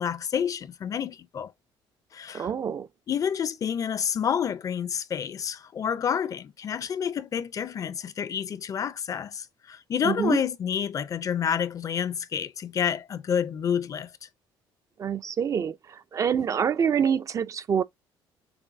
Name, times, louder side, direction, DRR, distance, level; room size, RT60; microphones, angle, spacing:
voice 1, 0.0-1.5 2.1-2.5 3.1-14.1, left 8 dB, 35° left, 0.4 m, -29 dB
voice 2, 2.3-2.9 10.0-10.4 15.0-17.8, right 7 dB, 35° right, 0.3 m, -26 dB
6.9 x 2.6 x 2.5 m
cardioid pair, 125°, 9 cm